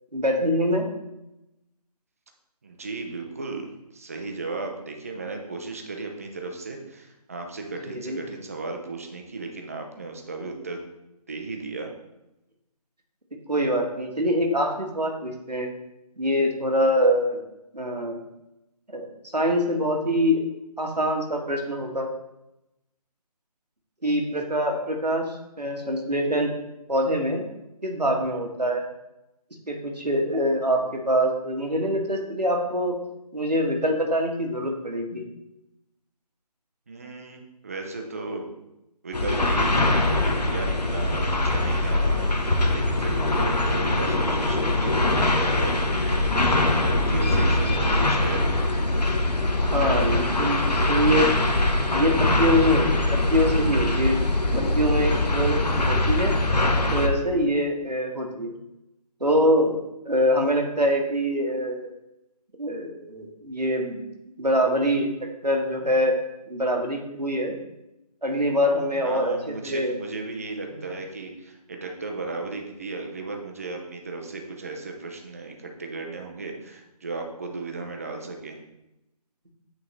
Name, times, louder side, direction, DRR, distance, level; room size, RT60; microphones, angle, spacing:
voice 1, 0.1-0.8 7.8-8.2 13.5-15.7 16.2-17.4 17.7-18.2 18.9-19.1 19.3-20.5 20.8-22.1 24.0-26.5 26.9-27.4 27.8-28.8 29.7-33.0 33.3-35.2 49.7-51.3 51.9-54.2 54.6-56.3 56.9-58.5 59.2-59.8 60.0-61.9 62.6-64.0 64.4-65.1 65.4-66.1 66.5-67.5 68.2-69.9 70.7-70.8, equal, 90° right, 2 dB, 1.4 m, -24 dB
voice 2, 2.6-3.7 3.9-10.8 11.3-11.9 36.9-38.5 39.0-46.6 46.8-48.4 49.7-50.3 69.0-78.6, right 3 dB, 25° right, 3 dB, 0.5 m, -35 dB
sound 1, 39.1-57.1, left 2 dB, 85° left, 0.9 m, -22 dB
8.4 x 3.7 x 3.2 m, 0.92 s
figure-of-eight pair, 155°, 20 cm